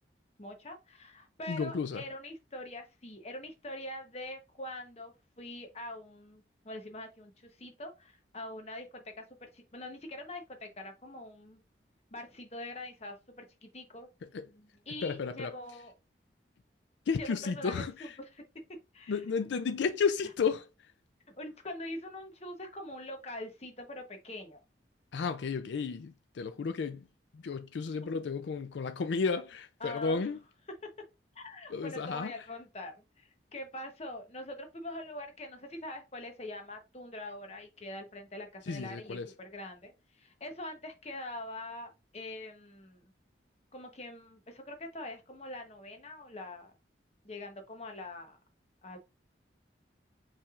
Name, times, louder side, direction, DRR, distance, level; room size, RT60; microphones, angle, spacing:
voice 1, 0.4-11.6 12.1-14.1 14.5-15.9 17.1-18.4 18.9-19.5 21.4-24.6 29.8-30.3 31.3-43.1 43.7-46.7 47.2-48.4 48.8-49.0, left 1 dB, 35° left, 0.9 m, -44 dB
voice 2, 1.5-2.0 14.3-14.4 15.0-15.5 17.1-18.1 19.1-20.7 25.1-27.0 27.3-30.4 31.7-32.3 38.7-39.3, left 5 dB, 80° left, 0.4 m, -32 dB
5.6 x 3.3 x 2.4 m
head